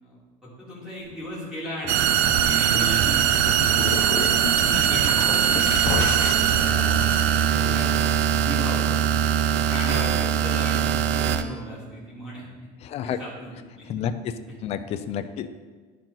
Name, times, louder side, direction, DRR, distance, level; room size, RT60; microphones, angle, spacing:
voice 1, 0.0-3.3 4.1-6.6 7.4-7.9 8.4-8.9 9.5-12.5 13.0-13.9, equal, 5° right, -7 dB, 2.0 m, -36 dB
sound 1, 1.0-6.6, left 4 dB, 15° left, 0.8 m, -42 dB
sound 2, 1.9-11.4, right 9 dB, 85° right, 0.5 m, -21 dB
sound 3, 2.0-8.8, left 5 dB, 75° left, 0.9 m, -32 dB
voice 2, 12.8-13.2 13.9-14.3 14.6-15.5, left 9 dB, 30° left, 10 dB, 0.3 m, -30 dB
10.5 x 4.5 x 3.8 m, 1.4 s
cardioid pair, 170°, 20 cm